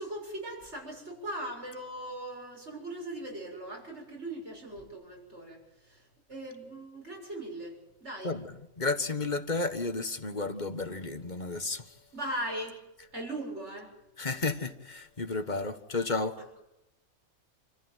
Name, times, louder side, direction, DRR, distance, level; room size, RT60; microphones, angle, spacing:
voice 1, 0.0-8.3 12.1-12.8 13.1-13.9 16.4-16.6, right 1 dB, 50° right, 7.1 m, -39 dB
voice 2, 8.2-11.9 14.2-16.4, left 3 dB, 30° left, 1.6 m, -32 dB
28.0 x 14.5 x 9.2 m
omnidirectional pair, 1.5 m